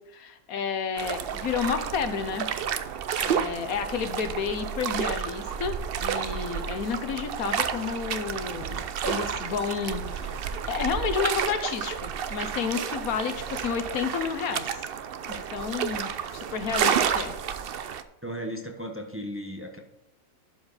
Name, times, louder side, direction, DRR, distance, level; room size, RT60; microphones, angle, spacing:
voice 1, 0.1-2.5 3.2-5.7 6.0-10.4 10.7-14.9 15.3-17.3, left 6 dB, 85° left, 9 dB, 1.4 m, -31 dB
sound 1, 1.0-18.0, right 8 dB, 60° right, 0.6 m, -31 dB
voice 2, 18.2-19.8, equal, 10° right, 3 dB, 0.9 m, -35 dB
12.0 x 5.3 x 4.0 m, 0.95 s
omnidirectional pair, 1.5 m